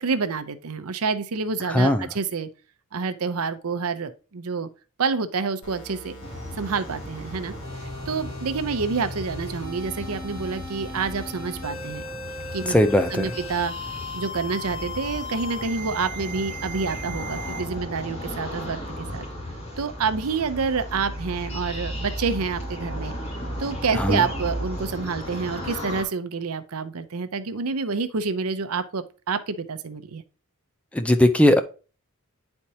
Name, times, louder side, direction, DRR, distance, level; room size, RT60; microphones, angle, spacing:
voice 1, 0.0-2.5 2.9-4.7 5.0-6.1 6.6-12.0 12.5-12.7 13.1-13.7 14.1-19.2 19.8-23.1 23.6-30.2, right 5 dB, 75° right, 0.7 m, -28 dB
voice 2, 1.6-2.1 12.7-13.3 23.9-24.3 30.9-31.6, left 1 dB, 5° left, 0.5 m, -19 dB
sound 1, 5.6-17.6, left 1 dB, 60° left, 2.4 m, -38 dB
sound 2, 6.2-26.0, equal, 30° left, 2.4 m, -35 dB
9.7 x 4.4 x 2.8 m
head